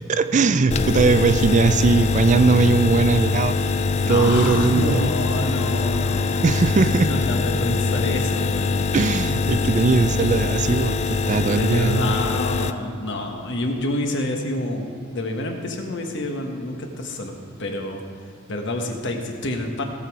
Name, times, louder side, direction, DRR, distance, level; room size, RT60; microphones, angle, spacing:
voice 1, 0.1-3.6 4.1-5.1 6.4-7.1 8.9-12.2, right 4 dB, 35° right, 11 dB, 0.4 m, -19 dB
sound 1, 0.7-12.7, left 4 dB, 30° left, 0.4 m, -23 dB
voice 2, 4.0-8.8 11.5-17.3 17.6-18.0 18.5-19.8, left 1 dB, 60° left, 3 dB, 1.4 m, -28 dB
17.0 x 7.4 x 4.8 m, 2.4 s
head